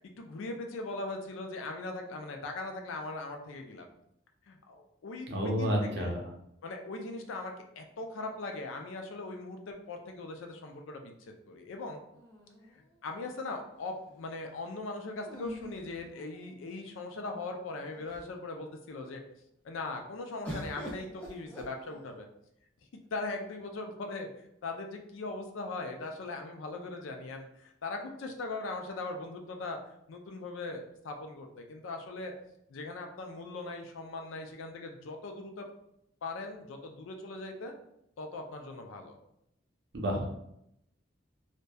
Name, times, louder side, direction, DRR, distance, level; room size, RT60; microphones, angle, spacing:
voice 1, 0.0-3.9 4.5-6.1 6.6-12.0 12.7-19.2 19.6-22.3 23.1-24.3 24.6-29.8 30.1-32.3 32.7-35.7 36.2-37.7 38.2-39.2, left 3 dB, 85° left, 4 dB, 0.4 m, -40 dB
voice 2, 5.3-6.2 39.9-40.3, equal, 60° right, 0 dB, 0.5 m, -30 dB
sound 1, 12.1-13.2 15.2-16.7 17.5-17.6 17.9-18.5 20.4-22.3 23.3-23.9, equal, 10° left, 0.4 m, -45 dB
2.6 x 2.1 x 2.2 m, 0.77 s
head